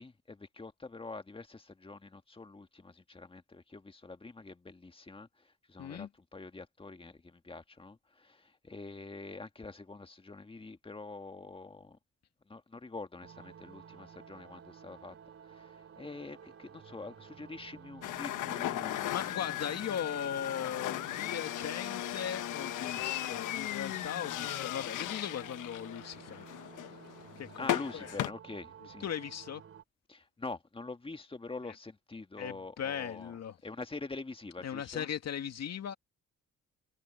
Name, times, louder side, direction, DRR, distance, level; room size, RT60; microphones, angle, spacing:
voice 1, 0.0-12.0 12.5-15.2 15.4-19.6 27.6-29.1 30.1-33.3 33.6-35.1, left 3 dB, 20° left, 1.9 m, -45 dB
voice 2, 5.8-6.1 19.1-26.5 27.4-28.2 29.0-29.6 31.7-31.8 32.4-33.6 34.6-35.9, left 8 dB, 60° left, 2.4 m, -38 dB
sound 1, 13.2-29.8, right 7 dB, 50° right, 3.0 m, -53 dB
sound 2, 18.0-28.3, left 14 dB, 85° left, 1.3 m, -37 dB
cardioid pair, 90°, 30 cm